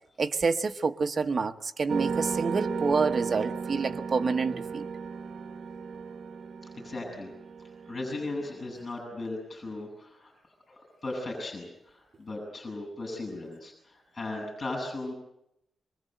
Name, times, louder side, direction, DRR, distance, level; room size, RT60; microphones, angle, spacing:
voice 1, 0.2-4.9, right 4 dB, 40° right, 1.1 m, -28 dB
sound 1, 1.9-8.9, right 5 dB, 80° right, 1.0 m, -35 dB
voice 2, 6.7-7.3 7.9-10.3 10.7-15.1, left 2 dB, 40° left, 8.0 m, -37 dB
25.5 x 22.5 x 7.9 m
wide cardioid pair, 160°, 0 cm